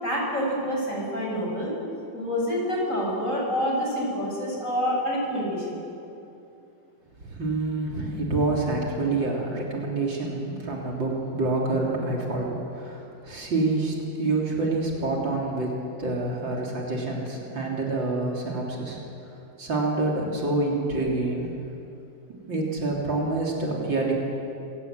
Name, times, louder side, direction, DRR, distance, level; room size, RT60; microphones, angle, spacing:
voice 1, 0.0-1.7 2.1-5.8, equal, 40° left, -3 dB, 7.5 m, -27 dB
voice 2, 7.2-15.7 16.0-19.0 19.6-21.5 22.5-24.1, right 2 dB, 75° right, -2 dB, 4.2 m, -27 dB
26.0 x 18.5 x 8.0 m, 2.8 s
omnidirectional pair, 2.1 m